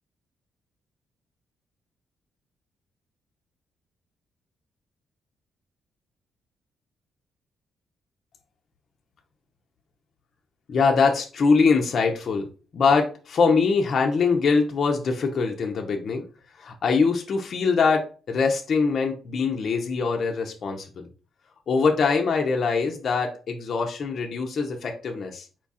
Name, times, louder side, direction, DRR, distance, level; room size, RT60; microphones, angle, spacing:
voice 1, 10.7-12.5 12.7-16.2 16.6-21.1 21.7-25.5, left 4 dB, 55° left, 2 dB, 0.7 m, -23 dB
4.5 x 2.4 x 4.1 m, 0.37 s
cardioid pair, 75°, 0 cm